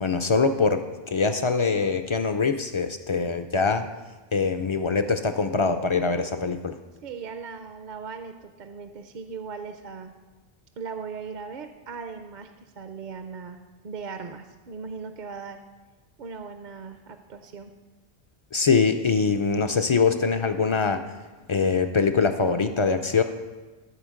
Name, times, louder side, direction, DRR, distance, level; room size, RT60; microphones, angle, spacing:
voice 1, 0.0-0.8 1.1-3.9 4.3-6.7 18.5-21.0 21.5-23.2, left 4 dB, 50° left, 8 dB, 0.3 m, -23 dB
voice 2, 7.0-10.1 10.8-15.6 16.2-17.8, right 5 dB, 55° right, 7 dB, 0.6 m, -38 dB
13.0 x 4.4 x 6.3 m, 1.3 s
omnidirectional pair, 1.0 m